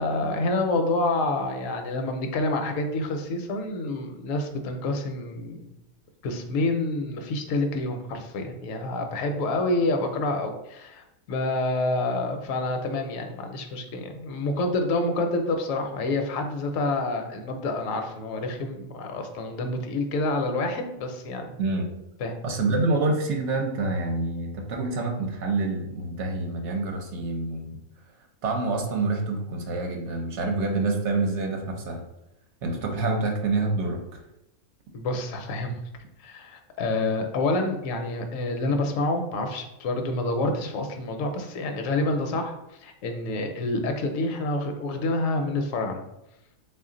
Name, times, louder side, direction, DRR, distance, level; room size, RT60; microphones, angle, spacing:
voice 1, 0.0-5.7 6.2-21.5 22.2-22.3 34.9-35.7 36.2-42.6 42.8-46.0, left 2 dB, 75° left, 5 dB, 0.9 m, -28 dB
voice 2, 22.4-27.8 28.4-32.0 32.6-34.2, right 3 dB, 65° right, 3 dB, 0.9 m, -27 dB
3.3 x 2.4 x 3.7 m, 0.88 s
omnidirectional pair, 1.4 m